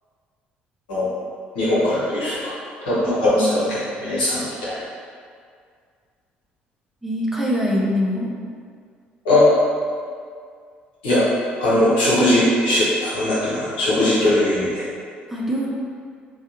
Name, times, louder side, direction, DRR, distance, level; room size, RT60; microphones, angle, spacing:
voice 1, 1.5-2.5 2.8-4.8 9.2-9.5 11.0-11.2 11.6-14.8, left 1 dB, 75° left, -9 dB, 0.9 m, -19 dB
voice 2, 3.1-3.7 7.0-8.3 15.3-15.7, equal, 5° right, -5 dB, 0.7 m, -23 dB
3.5 x 2.3 x 2.8 m, 2.1 s
figure-of-eight pair, 50°, 5 cm